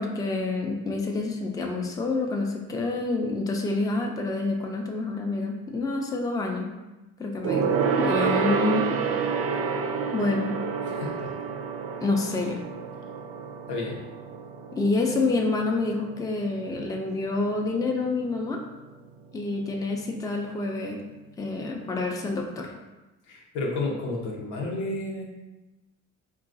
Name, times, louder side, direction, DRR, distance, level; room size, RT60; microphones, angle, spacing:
voice 1, 0.0-6.7 7.2-7.7 8.0-8.9 10.1-10.5 12.0-12.6 14.8-18.6 19.3-21.0 21.4-22.7, left 3 dB, 10° left, 1 dB, 0.4 m, -27 dB
Gong, 7.4-17.2 17.5-17.8 18.1-18.2, right 6 dB, 50° right, 0.4 m, -29 dB
voice 2, 10.8-11.4 13.7-14.0 23.3-25.2, left 2 dB, 80° left, -1 dB, 0.8 m, -31 dB
3.8 x 2.3 x 2.5 m, 1.1 s
cardioid pair, 90°, 30 cm